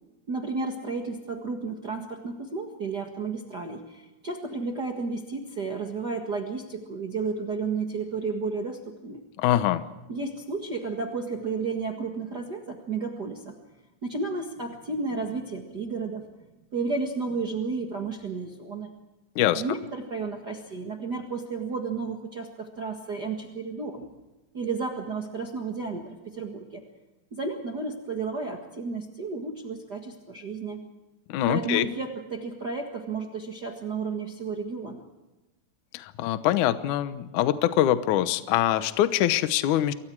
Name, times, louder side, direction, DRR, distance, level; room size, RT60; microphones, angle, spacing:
voice 1, 0.3-9.2 10.1-13.5 14.0-16.2 16.7-18.9 19.5-24.1 24.5-26.8 27.3-30.8 31.5-35.0, right 4 dB, 75° right, 2 dB, 0.9 m, -32 dB
voice 2, 9.4-9.8 19.4-19.6 31.3-31.9 35.9-39.9, left 12 dB, 80° left, 12 dB, 1.8 m, -24 dB
28.5 x 23.5 x 4.8 m, 1.1 s
omnidirectional pair, 5.0 m